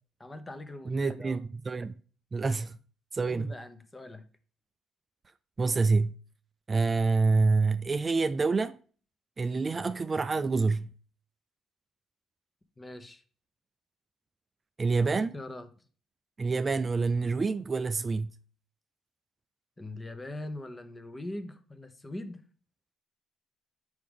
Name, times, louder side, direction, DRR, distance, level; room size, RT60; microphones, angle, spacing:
voice 1, 0.2-1.4 3.2-4.3 12.8-13.2 15.0-15.7 19.8-22.4, left 1 dB, 25° left, 1.0 m, -42 dB
voice 2, 0.9-2.0 2.3-2.8 3.1-3.5 5.6-6.2 6.7-8.8 9.4-10.9 14.8-15.3 16.4-18.3, right 4 dB, 35° right, 0.4 m, -27 dB
5.9 x 4.8 x 3.5 m
hypercardioid pair, 50°, 0 cm